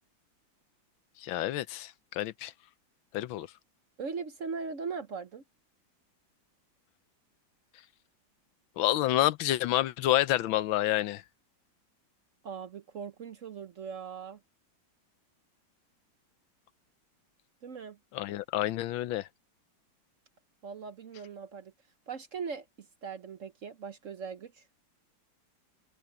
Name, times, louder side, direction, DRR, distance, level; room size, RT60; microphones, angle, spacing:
voice 1, 1.2-2.5 3.1-3.5 8.8-11.2 18.1-19.3, left 14 dB, 85° left, 1.5 m, -28 dB
voice 2, 4.0-5.4 12.4-14.4 17.6-18.0 20.6-21.7 22.1-24.6, right 5 dB, 50° right, 1.0 m, -40 dB
omnidirectional pair, 2.1 m